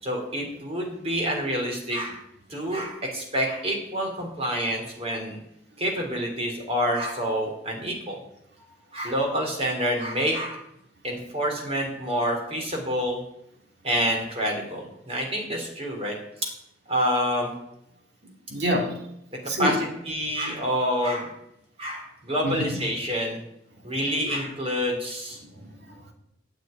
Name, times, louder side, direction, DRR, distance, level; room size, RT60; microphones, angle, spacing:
voice 1, 0.0-2.2 2.5-5.4 5.8-8.2 8.9-10.6 11.0-13.2 13.8-16.1 16.9-17.5 19.6-21.3 21.8-23.4 23.8-25.4, equal, 30° right, 1 dB, 3.3 m, -27 dB
voice 2, 18.2-18.9 19.4-19.7 22.4-22.8 23.8-23.9 25.4-26.1, equal, 60° right, 1 dB, 2.8 m, -29 dB
9.3 x 8.1 x 8.9 m, 0.79 s
head